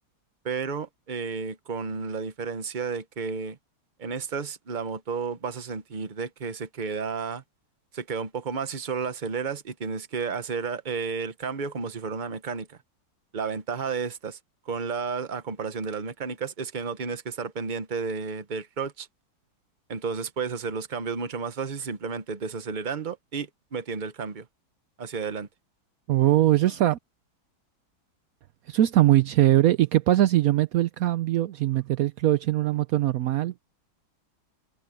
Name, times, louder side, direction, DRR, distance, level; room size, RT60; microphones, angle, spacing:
voice 1, 0.4-3.6 4.0-7.4 7.9-12.8 13.3-14.4 14.6-19.1 19.9-24.5 25.0-25.5, right 5 dB, 30° right, 0.9 m, -32 dB
voice 2, 26.1-27.0 28.7-33.5, right 14 dB, 85° right, 0.7 m, -21 dB
omnidirectional pair, 2.2 m